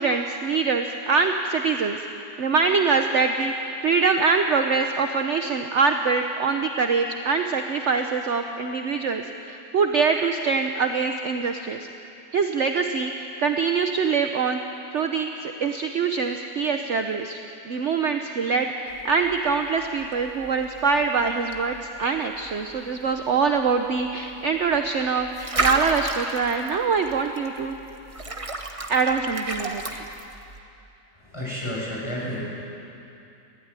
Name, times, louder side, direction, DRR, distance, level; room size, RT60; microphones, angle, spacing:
voice 1, 0.0-2.0 2.4-3.5 3.8-11.9 12.3-14.6 14.9-17.4 17.6-27.7 28.9-30.1, right 5 dB, 50° right, 5 dB, 1.1 m, -24 dB
sound 1, 18.9-30.6, right 2 dB, 20° right, 1.2 m, -34 dB
voice 2, 31.3-32.4, left 1 dB, 15° left, -5 dB, 6.4 m, -30 dB
22.0 x 15.5 x 9.7 m, 2.8 s
omnidirectional pair, 1.7 m